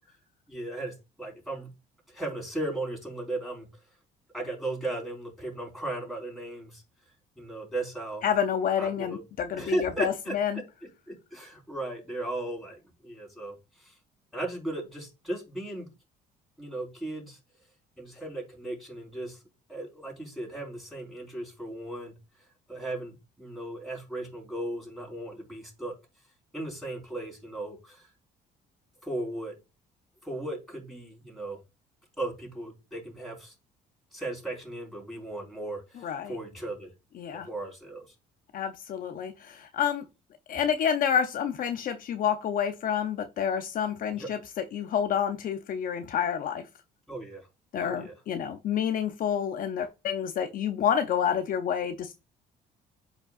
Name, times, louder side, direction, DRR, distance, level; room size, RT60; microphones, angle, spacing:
voice 1, 0.5-1.7 2.1-3.7 4.3-6.8 7.4-8.3 8.8-9.2 9.5-13.9 14.3-15.9 16.6-17.4 18.0-19.4 19.7-25.9 26.5-28.1 29.0-29.5 30.2-31.6 32.2-33.5 34.1-36.9 37.5-38.1 44.1-44.3 47.1-47.5 47.8-48.1, right 1 dB, ahead, 4.6 m, -36 dB
voice 2, 8.2-10.6 36.0-36.4 37.2-37.5 38.5-40.0 40.5-46.7 47.7-52.1, left 8 dB, 55° left, 0.7 m, -29 dB
8.3 x 5.3 x 2.5 m
cardioid pair, 110°, 17 cm